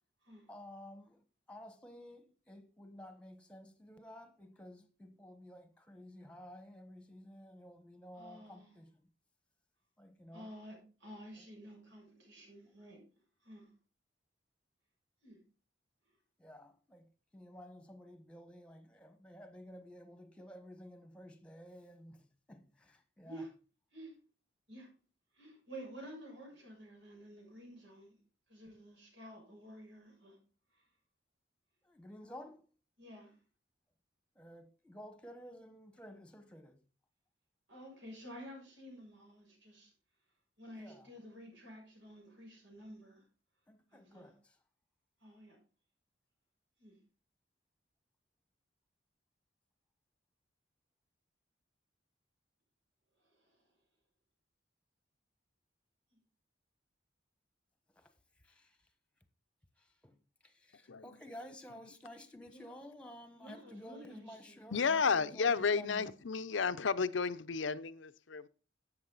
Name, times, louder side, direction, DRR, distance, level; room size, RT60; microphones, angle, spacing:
voice 1, 0.5-1.2 1.5-9.1 10.0-10.5 16.4-23.5 31.8-32.6 34.3-36.8 40.8-41.1 43.7-44.6 57.9-58.1 58.4-58.8 59.8-60.2 60.4-66.1, equal, 5° left, 1.3 m, -53 dB
voice 2, 8.1-8.7 10.3-13.0 13.4-13.7 15.2-15.4 23.2-23.5 23.9-24.1 24.7-24.9 25.3-28.2 28.5-30.4 30.7-30.8 33.0-33.4 37.7-39.9 40.6-43.2 43.9-44.3 45.2-45.6 46.8-47.0 53.3-53.6 56.1-56.2 61.3-61.4 62.5-62.7 63.4-64.6, equal, 80° right, 7.0 m, -51 dB
voice 3, 64.7-68.5, left 5 dB, 80° left, 0.7 m, -32 dB
12.5 x 8.4 x 4.0 m
head